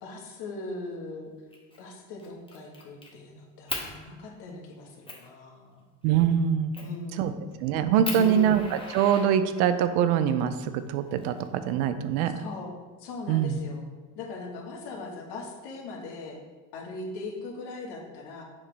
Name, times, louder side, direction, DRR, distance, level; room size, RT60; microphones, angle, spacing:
voice 1, 0.0-1.3 1.8-5.9 6.8-7.5 8.1-8.6 12.4-12.7 13.0-13.9 14.1-16.4 16.7-18.4, left 2 dB, 60° left, 0 dB, 1.6 m, -39 dB
Fire, 1.5-1.8 2.2-3.1 3.7-3.9 4.5-4.6 5.1-5.3 6.7-7.0 7.5-7.6 8.0-9.8 10.9-11.8, left 2 dB, 10° left, 1.3 m, -37 dB
voice 2, 6.0-6.7 7.2-7.3 7.6-12.4 13.3-13.6, right 9 dB, 75° right, 11 dB, 0.6 m, -24 dB
7.1 x 5.0 x 3.4 m, 1.3 s
supercardioid pair, 90°, 45 cm